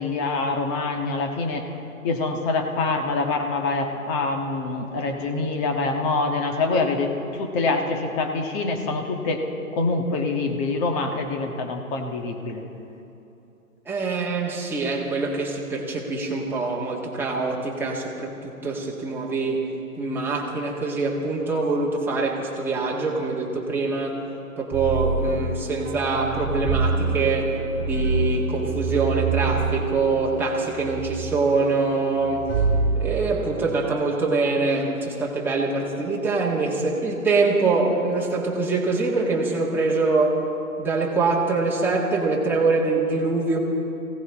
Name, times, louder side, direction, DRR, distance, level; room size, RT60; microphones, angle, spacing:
voice 1, 0.0-1.7 2.0-9.4 9.7-12.6, left 3 dB, 25° left, 3 dB, 1.6 m, -25 dB
voice 2, 13.9-19.6 20.0-24.2 24.6-27.5 27.8-32.4 33.0-40.3 40.8-43.6, right 3 dB, 5° right, -4 dB, 1.8 m, -24 dB
sound 1, 24.7-33.7, right 4 dB, 30° right, 2.1 m, -27 dB
23.5 x 17.0 x 3.7 m, 2.9 s
hypercardioid pair, 135°, 43 cm